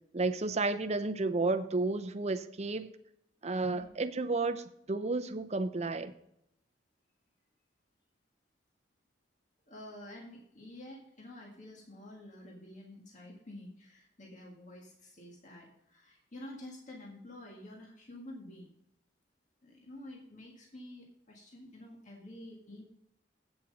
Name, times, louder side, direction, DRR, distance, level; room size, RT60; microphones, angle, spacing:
voice 1, 0.1-2.9 3.4-6.1, right 3 dB, 35° right, 10 dB, 0.6 m, -32 dB
voice 2, 9.7-18.7 19.6-22.8, left 1 dB, 40° left, -1 dB, 1.8 m, -49 dB
8.6 x 7.6 x 5.2 m, 0.75 s
head